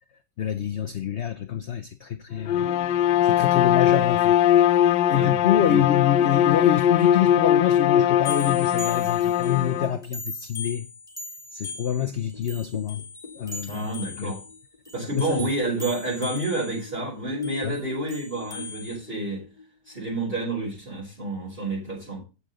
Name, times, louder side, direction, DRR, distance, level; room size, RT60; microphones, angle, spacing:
voice 1, 0.4-2.7 3.2-4.4 5.1-10.9 11.5-13.0 13.3-13.9 14.2-14.3 15.1-15.5 17.6-17.8, left 10 dB, 70° left, 0.6 m, -26 dB
Bowed string instrument, 2.4-10.0, left 11 dB, 85° left, 1.3 m, -20 dB
voice 2, 5.1-5.8 13.7-14.4 14.9-19.4 19.9-22.2, right 2 dB, 30° right, 4.2 m, -29 dB
sound 1, 8.2-9.7 10.0-16.9 17.4-19.0, left 3 dB, ahead, 2.9 m, -39 dB
sound 2, 12.0-15.5 15.8-19.9, left 3 dB, 20° left, 1.8 m, -40 dB
8.6 x 8.4 x 3.8 m
omnidirectional pair, 1.9 m